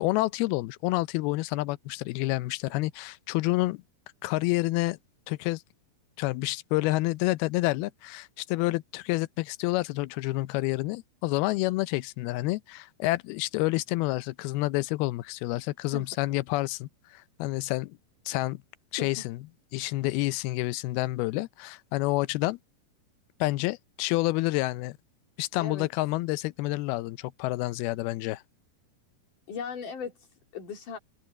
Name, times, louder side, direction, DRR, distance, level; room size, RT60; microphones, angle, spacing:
voice 1, 0.0-3.8 4.2-5.0 5.3-5.6 6.2-18.0 18.3-18.6 18.9-19.4 19.7-22.6 23.4-25.0 25.4-28.4, left 19 dB, 85° left, 2.5 m, -29 dB
voice 2, 29.5-31.0, left 5 dB, 60° left, 4.9 m, -37 dB
open air
omnidirectional pair, 4.4 m